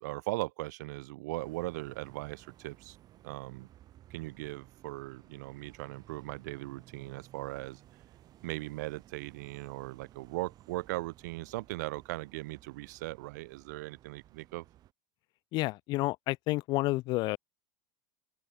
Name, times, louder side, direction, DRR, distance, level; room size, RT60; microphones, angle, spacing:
voice 1, 0.0-3.0 3.2-3.7 4.1-7.8 8.4-14.7, right 20 dB, 75° right, 0.5 m, -39 dB
sound 1, 1.4-14.9, right 13 dB, 45° right, 2.7 m, -58 dB
voice 2, 15.5-17.4, left 20 dB, 50° left, 0.4 m, -30 dB
open air
supercardioid pair, 110°, 10 cm